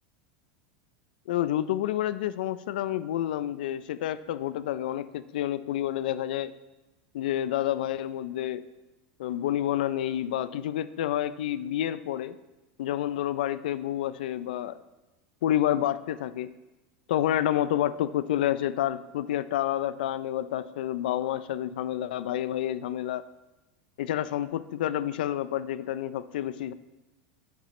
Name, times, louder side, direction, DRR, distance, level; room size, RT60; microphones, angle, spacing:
voice 1, 1.3-6.5 7.1-8.6 9.2-12.4 12.8-14.8 15.4-16.5 17.1-23.2 24.0-26.7, left 12 dB, 85° left, 15 dB, 0.4 m, -29 dB
8.8 x 7.2 x 3.1 m, 1.1 s
supercardioid pair, 165°, 5 cm